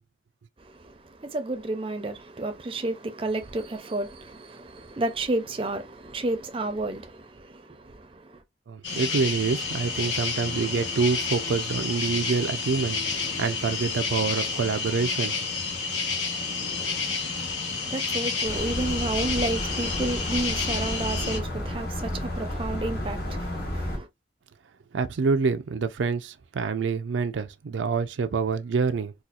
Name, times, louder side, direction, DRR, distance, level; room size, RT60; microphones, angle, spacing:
voice 1, 0.6-8.4 17.4-24.1, right 2 dB, 30° right, 0.5 m, -31 dB
voice 2, 8.7-15.4 24.9-29.1, right 5 dB, 90° right, 0.4 m, -26 dB
sound 1, 8.8-21.4, left 4 dB, 80° left, 1.1 m, -30 dB
sound 2, 18.4-24.0, left 1 dB, 55° left, 1.0 m, -32 dB
4.2 x 2.3 x 2.4 m
head